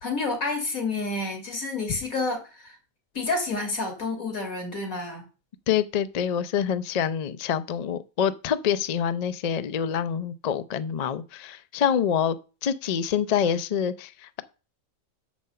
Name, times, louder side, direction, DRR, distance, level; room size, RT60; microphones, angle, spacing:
voice 1, 0.0-2.8 3.1-5.2, left 3 dB, 80° left, 2.9 m, -29 dB
voice 2, 5.7-12.4 12.6-14.4, left 8 dB, 65° left, 0.4 m, -26 dB
6.5 x 5.3 x 6.8 m
omnidirectional pair, 1.4 m